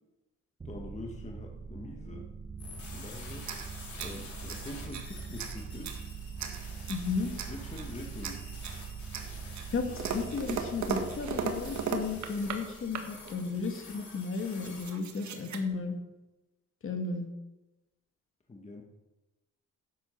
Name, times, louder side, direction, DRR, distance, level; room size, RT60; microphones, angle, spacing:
voice 1, 0.6-2.3 2.9-3.5 4.0-6.0 7.5-8.5 18.5-18.8, left 2 dB, 25° left, 1 dB, 1.7 m, -44 dB
sound 1, 0.6-13.5, right 6 dB, 20° right, 0.6 m, -43 dB
sound 2, 2.6-14.9, left 4 dB, 70° left, 5.3 m, -49 dB
sound 3, 3.4-5.1 5.4-6.0 6.4-7.1 7.4-7.9 8.2-8.8 9.1-12.6 12.9-13.4 14.1-14.2 14.4-15.6, right 6 dB, 70° right, 1.7 m, -37 dB
voice 2, 6.9-7.3 9.7-16.0 16.8-17.3, left 4 dB, 45° left, 4 dB, 2.2 m, -34 dB
11.5 x 9.2 x 5.8 m, 1.0 s
cardioid pair, 90°, 30 cm